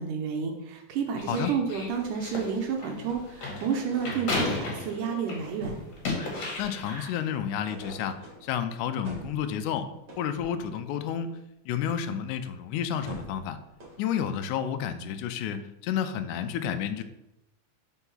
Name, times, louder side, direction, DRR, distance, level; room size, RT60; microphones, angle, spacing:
voice 1, 0.0-5.8, right 6 dB, 80° right, 2 dB, 2.1 m, -30 dB
sound 1, 1.2-5.5 5.9-7.2, left 2 dB, 55° left, 2.2 m, -34 dB
sound 2, 2.0-2.5 3.1-4.5 5.4-7.0 7.7-8.6 9.0-10.8 13.0-14.2, right 1 dB, 40° right, 1.7 m, -45 dB
voice 2, 6.6-9.9 10.2-11.3 11.7-13.6 14.0-17.0, left 9 dB, 90° left, 8 dB, 1.7 m, -30 dB
4.6 x 4.5 x 5.5 m, 0.84 s
omnidirectional pair, 4.1 m